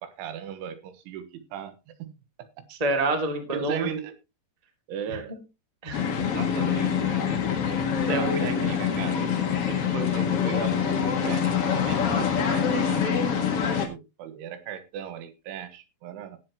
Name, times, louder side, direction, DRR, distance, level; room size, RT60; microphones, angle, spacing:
voice 1, 0.0-1.7 2.0-2.1 3.5-4.1 4.9-5.4 6.2-7.4 8.1-9.3 9.7-16.4, right 8 dB, 90° right, 10 dB, 3.7 m, -37 dB
voice 2, 2.7-3.9 5.1-5.2 5.8-6.1 7.7-8.4, right 2 dB, 30° right, 4 dB, 0.7 m, -28 dB
sound 1, 5.9-13.9, left 7 dB, 60° left, 1.5 m, -25 dB
18.0 x 7.9 x 3.0 m, 0.26 s
omnidirectional pair, 5.5 m